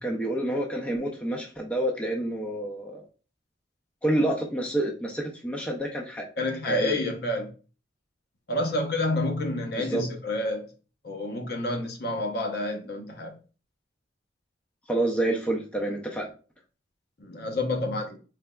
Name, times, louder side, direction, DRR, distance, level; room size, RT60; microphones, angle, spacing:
voice 1, 0.0-3.0 4.0-6.2 6.6-7.0 9.8-10.0 14.9-16.3, right 1 dB, 5° left, 0.5 m, -28 dB
voice 2, 6.4-7.5 8.5-10.7 11.0-13.3 17.2-18.2, left 1 dB, 55° left, 0.8 m, -29 dB
3.9 x 3.4 x 2.2 m
head